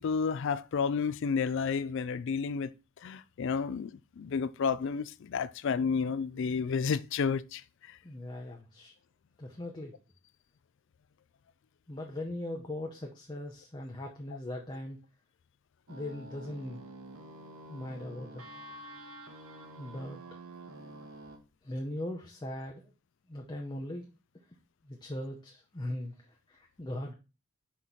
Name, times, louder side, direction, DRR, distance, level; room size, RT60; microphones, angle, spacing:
voice 1, 0.0-2.7 3.0-8.0, left 5 dB, 55° left, 0.3 m, -31 dB
voice 2, 8.0-8.9 9.4-9.9 11.9-15.0 15.9-16.8 17.7-18.4 19.8-20.2 21.6-22.9 23.3-24.1 24.8-26.2 26.5-27.1, left 1 dB, 20° left, 0.7 m, -39 dB
sound 1, 15.9-21.4, right 1 dB, 85° right, 1.3 m, -48 dB
5.8 x 3.2 x 5.4 m
head